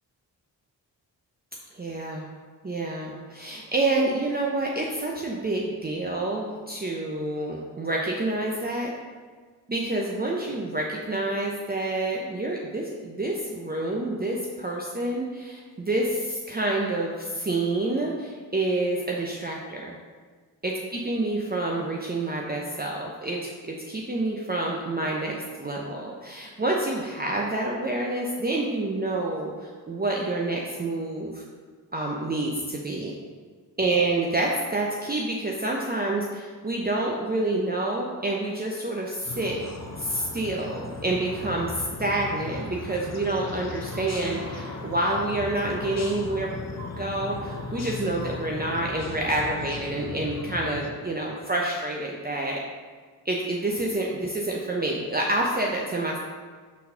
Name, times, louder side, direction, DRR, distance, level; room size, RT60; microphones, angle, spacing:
voice 1, 1.7-2.3 2.6-8.9 9.7-20.0 20.6-20.7 21.0-31.4 31.9-33.2 33.8-39.6 40.0-46.5 46.9-52.6 53.2-56.2, right 2 dB, 20° right, -2 dB, 0.8 m, -28 dB
sound 1, 38.9-48.9, right 2 dB, 55° right, 1.5 m, -47 dB
sound 2, 39.3-50.9, left 3 dB, 35° left, 0.9 m, -37 dB
4.2 x 4.1 x 5.6 m, 1.5 s
supercardioid pair, 40°, 43 cm